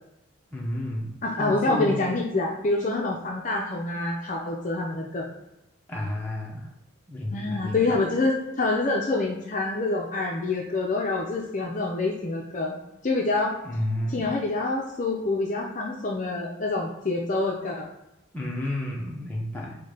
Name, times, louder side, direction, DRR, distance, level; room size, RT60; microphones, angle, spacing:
voice 1, 0.5-2.1 5.9-6.7 7.1-8.0 13.6-14.3 18.3-19.8, left 1 dB, 10° left, -3 dB, 0.8 m, -31 dB
voice 2, 1.2-5.3 7.3-12.8 13.0-13.6 14.1-17.9, left 2 dB, 40° left, -1 dB, 0.5 m, -26 dB
4.5 x 2.2 x 4.8 m, 0.89 s
head